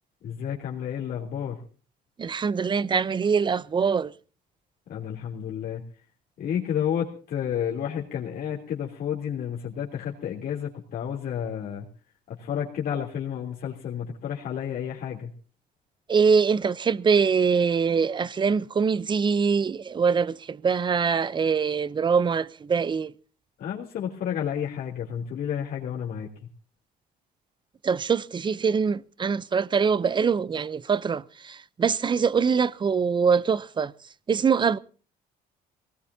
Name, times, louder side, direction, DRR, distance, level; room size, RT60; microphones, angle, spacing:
voice 1, 0.2-1.6 4.9-5.8 6.4-11.8 12.3-15.3 23.6-26.3, left 8 dB, 60° left, 3.2 m, -31 dB
voice 2, 2.2-4.1 16.1-23.1 27.8-33.9 34.3-34.8, right 6 dB, 25° right, 0.7 m, -23 dB
22.0 x 19.0 x 2.8 m
cardioid pair, 110°, 17 cm